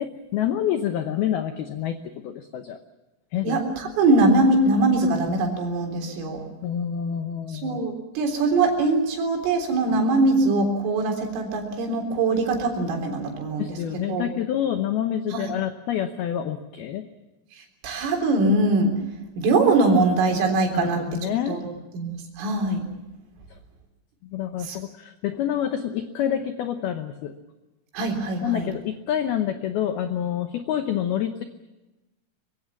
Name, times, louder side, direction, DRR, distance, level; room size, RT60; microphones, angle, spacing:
voice 1, 0.0-2.8 3.3-3.9 6.6-7.8 9.9-10.0 13.6-17.0 20.7-21.6 24.2-27.3 28.4-31.4, left 10 dB, 85° left, 8 dB, 2.2 m, -27 dB
voice 2, 3.4-6.4 7.6-13.8 14.1-14.3 15.3-15.4 17.8-18.9 19.4-21.0 21.5-21.6 21.9-22.8 24.7-24.8 27.9-28.7, right 2 dB, 75° right, 3 dB, 6.1 m, -22 dB
24.5 x 22.5 x 7.2 m, 1.1 s
omnidirectional pair, 5.9 m